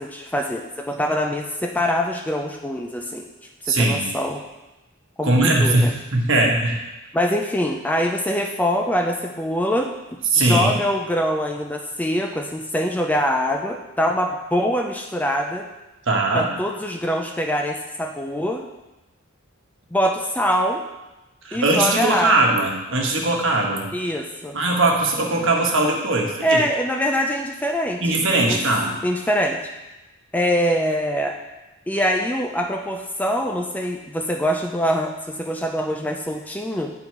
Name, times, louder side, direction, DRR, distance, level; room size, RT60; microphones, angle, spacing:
voice 1, 0.0-3.2 3.7-4.4 5.2-5.9 7.1-9.9 10.3-15.6 16.3-18.6 19.9-20.8 21.5-22.4 23.9-24.6 26.4-28.0 28.5-28.6 29.0-29.6 30.3-31.4 31.9-36.9, equal, 5° left, 2 dB, 0.4 m, -24 dB
voice 2, 3.7-4.1 5.2-6.8 10.3-10.7 16.1-16.5 21.4-23.9 24.5-26.6 28.0-29.0, right 2 dB, 60° right, 0 dB, 1.2 m, -20 dB
9.0 x 3.9 x 4.5 m, 1.0 s
head